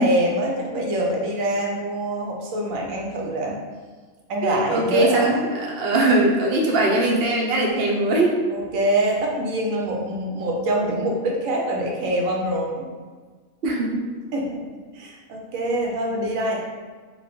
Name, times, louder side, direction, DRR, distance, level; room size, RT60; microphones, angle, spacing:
voice 1, 0.0-3.6 4.3-5.4 8.5-12.9 14.3-14.6 14.9-16.6, right 1 dB, 75° right, -1 dB, 1.0 m, -24 dB
voice 2, 4.4-8.3 13.6-14.1, right 2 dB, 60° right, -1 dB, 0.7 m, -21 dB
3.1 x 2.1 x 4.1 m, 1.5 s
omnidirectional pair, 1.4 m